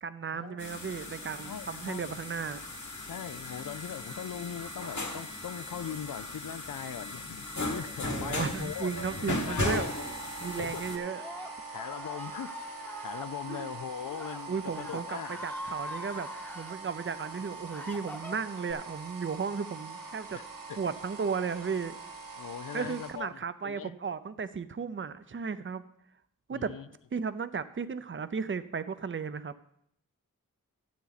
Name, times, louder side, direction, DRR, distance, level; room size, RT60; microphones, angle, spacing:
voice 1, 0.0-2.6 8.1-9.9 10.4-11.2 13.5-13.7 14.5-16.3 16.5-20.4 20.8-22.0 22.7-25.8 26.5-26.7 27.1-29.6, right 5 dB, 35° right, 13 dB, 0.6 m, -35 dB
sound 1, 0.6-11.0, left 2 dB, 60° left, 1.9 m, -37 dB
voice 2, 1.4-2.1 3.1-8.9 9.3-9.9 10.6-10.8 11.7-12.5 13.0-15.4 20.3-20.8 22.4-23.3 23.6-23.9 26.5-26.9, left 9 dB, 75° left, 15 dB, 0.5 m, -40 dB
sound 2, 9.6-23.1, right 4 dB, 85° right, 1.8 m, -43 dB
Screaming, 10.9-13.3 14.1-14.4 14.7-16.8 17.3-18.7, left 1 dB, 5° left, 1.0 m, -43 dB
12.5 x 8.1 x 4.1 m, 0.71 s
wide cardioid pair, 70°, 33 cm